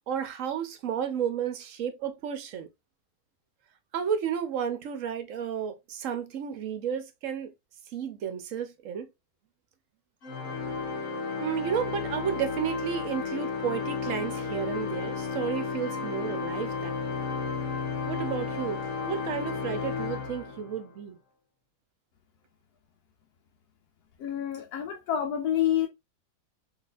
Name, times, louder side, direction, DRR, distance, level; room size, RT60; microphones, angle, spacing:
voice 1, 0.0-2.7 3.9-7.5 7.9-9.1 11.3-17.2 18.1-21.2, right 8 dB, 65° right, 0.9 m, -32 dB
Organ, 10.2-20.9, left 5 dB, 55° left, 1.4 m, -33 dB
voice 2, 24.2-25.9, left 10 dB, 80° left, 1.2 m, -28 dB
4.0 x 2.9 x 2.4 m
omnidirectional pair, 1.7 m